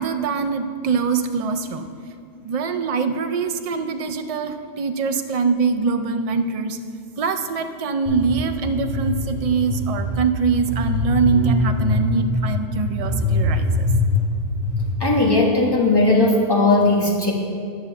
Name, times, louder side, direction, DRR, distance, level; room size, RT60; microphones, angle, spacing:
voice 1, 0.0-1.9 2.4-6.8 7.2-13.7, right 5 dB, 60° right, 8 dB, 0.3 m, -23 dB
sound 1, 8.1-14.9, left 2 dB, 5° right, 2.7 m, -23 dB
voice 2, 15.0-17.3, left 2 dB, 20° left, -2 dB, 1.4 m, -17 dB
10.5 x 6.9 x 5.9 m, 2.3 s
omnidirectional pair, 1.3 m